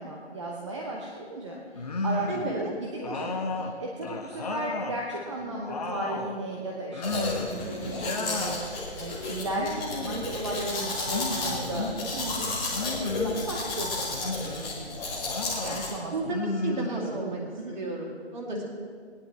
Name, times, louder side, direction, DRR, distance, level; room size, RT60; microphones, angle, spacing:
voice 1, 0.0-8.7 9.0-12.5 13.0-17.7, right 2 dB, 25° right, -1 dB, 0.9 m, -36 dB
sound 1, 1.8-2.6 3.0-5.0 5.4-6.4 6.9-7.6 7.9-8.6 9.5-10.2 11.1-12.0 12.7-13.4 14.1-14.7 15.2-15.9 16.2-17.4, left 3 dB, 35° left, 0.9 m, -33 dB
voice 2, 2.3-2.7 16.1-18.6, right 2 dB, 40° right, -2 dB, 2.6 m, -33 dB
Domestic sounds home sounds, 7.0-15.9, left 2 dB, 5° left, 0.8 m, -33 dB
17.5 x 10.5 x 3.5 m, 2.1 s
figure-of-eight pair, 150°, 34 cm